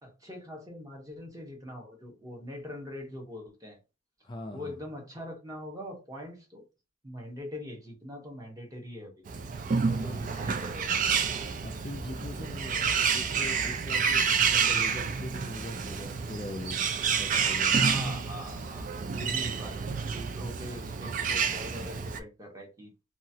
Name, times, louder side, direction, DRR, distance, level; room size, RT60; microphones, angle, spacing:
voice 1, 0.0-3.8 4.5-6.6 7.0-9.2 9.8-11.0 17.7-19.8 20.1-22.9, left 1 dB, 20° right, 1.0 m, -42 dB
voice 2, 4.2-4.8 9.9-10.3 11.6-16.8 17.2-18.2, left 1 dB, 25° left, 0.4 m, -42 dB
Bird, 9.3-22.2, right 6 dB, 45° right, 0.4 m, -29 dB
2.9 x 2.4 x 2.7 m
head